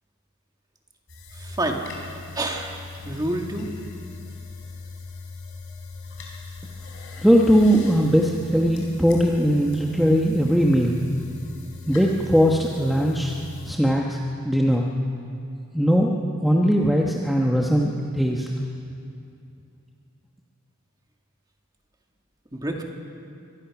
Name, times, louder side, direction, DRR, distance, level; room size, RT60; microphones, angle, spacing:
sound 1, 1.1-13.7, left 3 dB, 60° left, 4.1 m, -39 dB
voice 1, 1.3-1.9 2.4-3.7 22.5-22.8, right 1 dB, 15° right, 1 dB, 1.9 m, -28 dB
voice 2, 7.2-11.0 11.9-13.3 13.7-14.2 14.4-14.9 15.7-16.1 16.4-18.5, equal, ahead, -1 dB, 1.1 m, -20 dB
24.5 x 19.0 x 6.0 m, 2.5 s
head